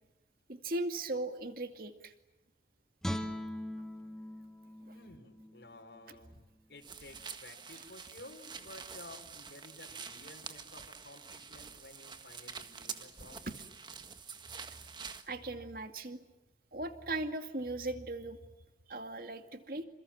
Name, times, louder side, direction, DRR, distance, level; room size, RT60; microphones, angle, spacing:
voice 1, 0.5-2.1 13.5-13.6 15.3-16.2 16.7-18.4 18.9-19.8, right 2 dB, 55° right, 7 dB, 2.3 m, -38 dB
Guitar, 3.0-6.2 6.6-6.7, left 1 dB, 5° left, 1.9 m, -41 dB
voice 2, 4.9-13.4, left 2 dB, 75° left, 2 dB, 4.7 m, -53 dB
sound 1, 6.8-15.3, right 6 dB, 25° right, 1.6 m, -47 dB
28.5 x 27.5 x 7.4 m, 1.0 s
head